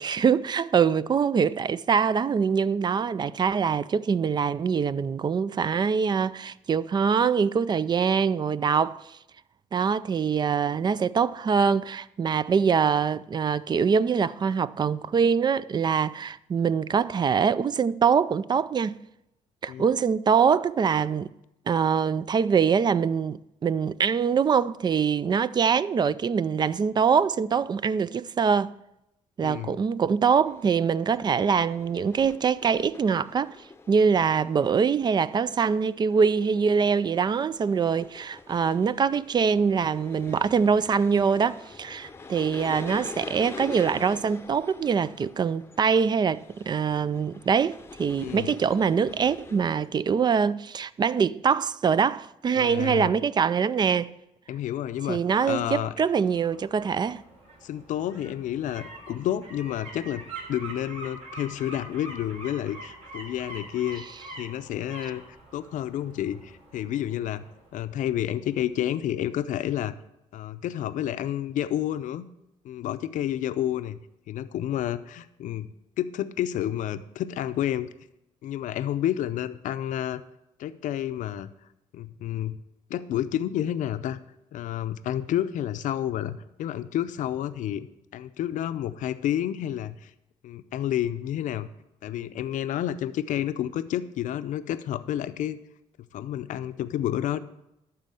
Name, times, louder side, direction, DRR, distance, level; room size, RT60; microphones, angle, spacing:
voice 1, 0.0-9.2 9.7-18.9 19.6-21.3 21.7-28.7 29.4-33.6 33.9-54.1 55.1-57.2, right 6 dB, 35° right, 0.4 m, -24 dB
voice 2, 29.4-29.8 48.2-48.6 52.5-53.1 54.5-55.9 57.6-60.2 60.5-64.0 64.4-65.2 65.5-67.4 67.7-69.9 70.3-72.3 72.6-74.0 74.3-75.7 76.0-77.9 78.4-80.2 80.6-81.5 81.9-82.6 82.9-84.2 84.5-87.9 88.1-90.1 90.4-91.7 92.0-95.6 96.1-97.4, left 11 dB, 70° left, 0.6 m, -30 dB
sound 1, 30.4-49.9, left 3 dB, 20° left, 0.7 m, -45 dB
sound 2, 55.9-68.6 69.0-69.1, right 2 dB, 55° right, 4.0 m, -45 dB
12.0 x 4.3 x 7.6 m
cardioid pair, 90°, 13 cm